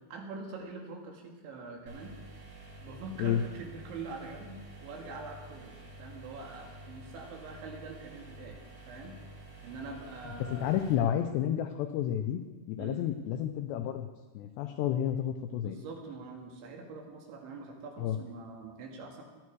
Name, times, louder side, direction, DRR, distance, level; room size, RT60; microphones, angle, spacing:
voice 1, 0.1-2.2 2.8-5.7 6.0-8.6 8.9-9.2 9.6-10.8 12.8-13.0 15.6-19.2, right 3 dB, 70° right, 1 dB, 4.2 m, -44 dB
sound 1, 1.9-10.9, right 1 dB, 50° right, 8.4 m, -49 dB
voice 2, 10.5-12.4 12.7-14.1 14.3-15.8 18.0-18.2, left 10 dB, 85° left, 7 dB, 2.4 m, -30 dB
19.5 x 12.5 x 4.7 m, 1.3 s
omnidirectional pair, 5.7 m